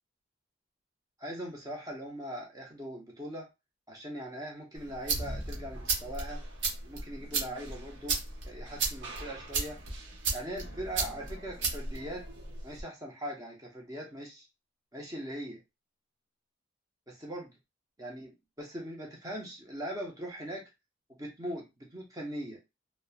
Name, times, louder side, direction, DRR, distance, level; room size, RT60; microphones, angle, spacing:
voice 1, 1.2-3.5 3.9-6.4 6.8-8.2 8.4-9.8 10.3-12.2 12.6-14.5 14.9-15.6 17.1-17.5 18.0-20.6 21.2-22.6, equal, 20° right, -1 dB, 0.5 m, -40 dB
sound 1, 4.7-12.8, right 4 dB, 70° right, 0.8 m, -35 dB
2.8 x 2.1 x 2.3 m, 0.24 s
head